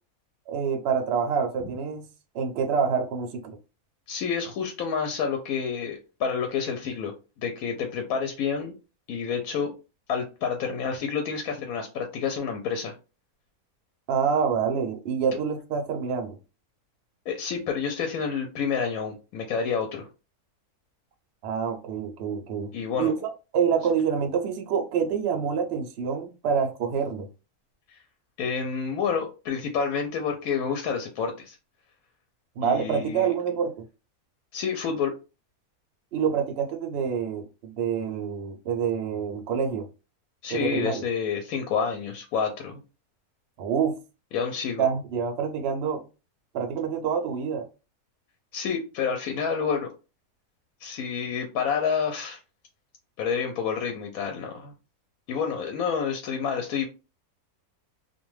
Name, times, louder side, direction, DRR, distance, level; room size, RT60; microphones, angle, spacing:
voice 1, 0.5-2.1 2.3-3.6 14.1-16.4 21.4-22.7 23.0-27.3 32.6-33.8 36.1-39.9 40.5-41.0 43.6-44.0 44.8-46.0 46.5-47.7, right 7 dB, 60° right, 0.7 m, -27 dB
voice 2, 4.1-7.1 7.4-8.7 9.1-9.7 10.1-12.9 17.3-20.1 22.7-23.1 27.9-28.0 28.4-31.6 32.6-33.3 34.5-35.1 40.4-42.8 44.3-44.9 48.5-49.9 50.8-52.4 53.2-54.7 55.3-56.9, left 6 dB, 75° left, 1.0 m, -29 dB
2.5 x 2.2 x 3.0 m
omnidirectional pair, 1.6 m